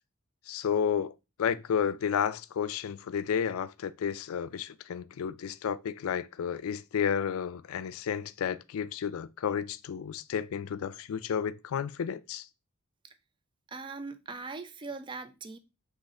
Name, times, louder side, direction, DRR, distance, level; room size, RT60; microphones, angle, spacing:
voice 1, 0.5-1.1 1.4-12.4, left 7 dB, 70° left, 0.4 m, -31 dB
voice 2, 13.7-15.6, right 4 dB, 20° right, 0.4 m, -40 dB
4.0 x 3.0 x 3.6 m
head